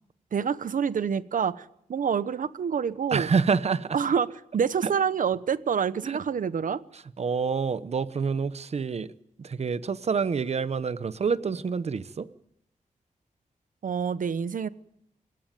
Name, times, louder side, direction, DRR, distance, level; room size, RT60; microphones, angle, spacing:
voice 1, 0.3-3.3 3.9-6.8 13.8-14.7, right 7 dB, 75° right, 15 dB, 1.0 m, -27 dB
voice 2, 3.1-4.0 6.0-6.2 7.2-9.1 9.4-12.3, right 5 dB, 50° right, 15 dB, 0.9 m, -27 dB
29.5 x 17.0 x 9.1 m, 0.75 s
wide cardioid pair, 175°, 14 cm